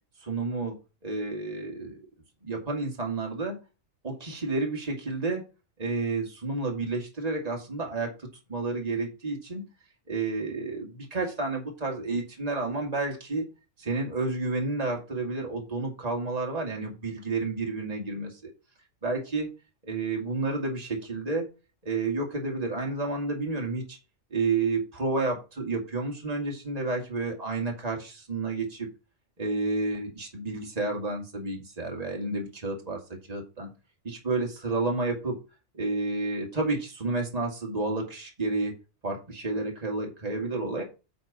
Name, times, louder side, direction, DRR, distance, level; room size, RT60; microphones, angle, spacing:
voice 1, 0.2-0.8 1.0-2.0 2.4-3.6 4.0-5.4 5.8-9.6 10.1-13.4 13.8-18.5 19.0-19.5 19.8-21.5 21.8-24.0 24.3-28.9 29.4-33.0 33.3-33.7 34.0-35.4 35.7-38.7 39.0-40.8, right 3 dB, 30° right, 0 dB, 2.2 m, -30 dB
9.1 x 4.4 x 5.3 m, 0.30 s
omnidirectional pair, 1.2 m